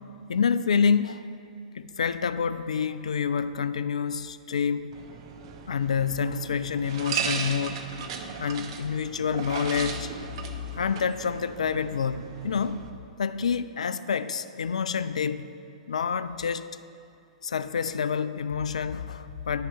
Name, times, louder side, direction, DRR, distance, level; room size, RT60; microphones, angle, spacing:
voice 1, 0.3-1.2 1.7-4.9 5.7-7.9 8.4-10.1 10.8-12.8 13.2-15.4 15.9-16.7 17.4-19.7, left 6 dB, 65° left, 0.3 m, -27 dB
sound 1, 4.9-12.9, right 6 dB, 45° right, 0.8 m, -36 dB
10.5 x 6.8 x 5.0 m
figure-of-eight pair, 105°, 4 cm